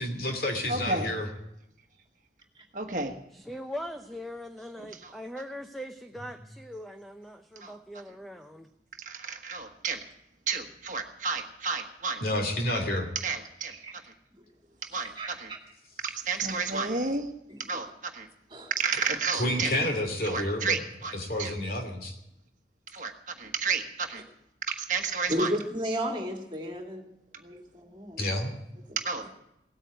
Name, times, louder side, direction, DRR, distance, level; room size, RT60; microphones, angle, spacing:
voice 1, 0.0-1.3 12.2-13.1 19.3-20.8 21.1-22.1 28.2-28.6, left 1 dB, 55° left, 4 dB, 2.7 m, -29 dB
voice 2, 0.7-1.1 2.7-3.2 4.8-5.1 7.6-7.7 9.0-10.0 10.5-12.2 13.1-13.7 14.8-15.5 16.0-17.3 17.7-18.3 18.7-19.7 20.2-21.1 21.4-21.6 22.9-23.1 23.4-24.2 24.7-25.5 28.2-28.3 29.0-29.3, right 4 dB, 45° right, 4 dB, 1.3 m, -31 dB
voice 3, 3.3-8.7, equal, ahead, 5 dB, 0.6 m, -41 dB
voice 4, 15.2-15.6 17.5-17.8 18.5-18.7 25.3-27.0 27.4-28.2, equal, 25° right, 2 dB, 2.4 m, -33 dB
17.5 x 9.0 x 9.1 m, 0.85 s
head